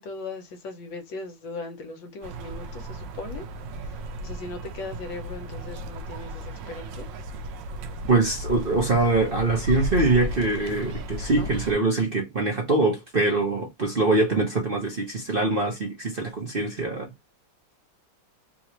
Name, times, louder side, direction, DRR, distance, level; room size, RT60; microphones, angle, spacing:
voice 1, 0.0-3.5 4.2-7.1 11.3-11.5, left 3 dB, 75° left, 1.7 m, -38 dB
sound 1, 2.2-11.7, equal, 70° right, 1.3 m, -34 dB
voice 2, 8.1-17.1, right 2 dB, 35° right, 1.0 m, -23 dB
3.8 x 3.1 x 2.9 m
omnidirectional pair, 2.2 m